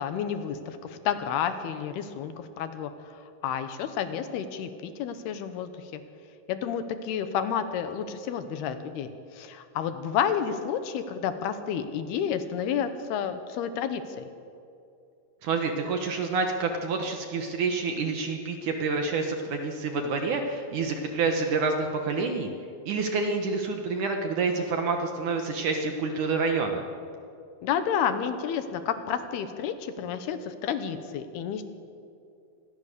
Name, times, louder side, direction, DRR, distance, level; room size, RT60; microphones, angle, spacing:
voice 1, 0.0-6.0 6.5-14.3 27.6-31.6, left 8 dB, 75° left, 10 dB, 3.0 m, -30 dB
voice 2, 15.4-22.5 22.9-26.8, right 4 dB, 60° right, 4 dB, 2.3 m, -28 dB
26.5 x 20.0 x 6.8 m, 2.6 s
omnidirectional pair, 4.8 m